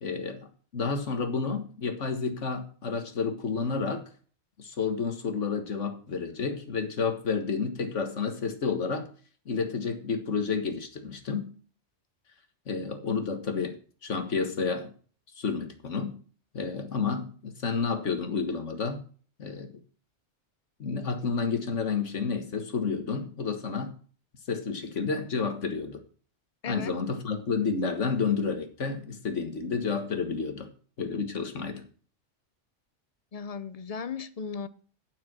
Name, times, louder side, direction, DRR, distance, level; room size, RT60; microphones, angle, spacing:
voice 1, 0.0-4.0 4.6-9.1 9.5-11.5 12.7-13.8 14.0-14.9 15.4-16.2 16.5-19.0 19.4-19.7 20.8-23.9 24.5-26.0 26.7-30.7 31.0-31.9, left 5 dB, 85° left, 1.9 m, -30 dB
voice 2, 33.3-34.7, left 6 dB, 40° left, 0.6 m, -36 dB
9.4 x 6.9 x 6.0 m
omnidirectional pair, 1.2 m